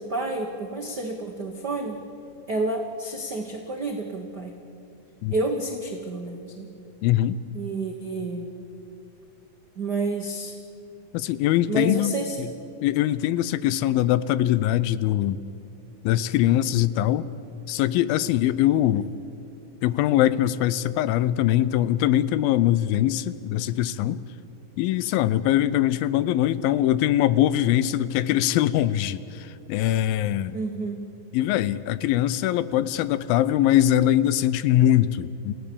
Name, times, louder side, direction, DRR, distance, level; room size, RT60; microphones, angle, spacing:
voice 1, 0.0-2.0 2.5-4.6 5.3-6.7 7.5-8.5 9.7-10.5 11.7-12.4 30.5-31.0, right 2 dB, 80° right, 2 dB, 0.9 m, -29 dB
voice 2, 7.0-7.4 11.1-12.5 12.8-15.4 16.0-17.3 17.7-19.1 19.8-24.2 24.8-30.6 31.3-35.5, left 12 dB, 85° left, 16 dB, 2.4 m, -22 dB
28.0 x 16.5 x 7.0 m, 2.6 s
omnidirectional pair, 4.2 m